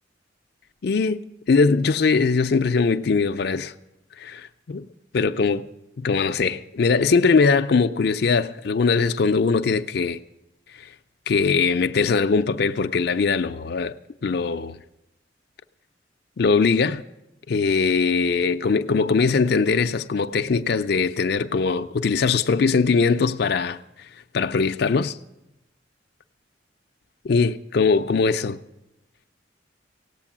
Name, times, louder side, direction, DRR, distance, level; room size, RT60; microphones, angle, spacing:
voice 1, 0.8-1.2 1.5-3.7 4.2-4.9 5.1-5.7 6.0-10.2 10.8-10.9 11.3-13.9 14.2-14.8 16.4-17.0 17.5-23.8 24.3-25.2 27.2-28.6, left 4 dB, 55° left, 0.5 m, -21 dB
17.5 x 8.3 x 7.2 m
head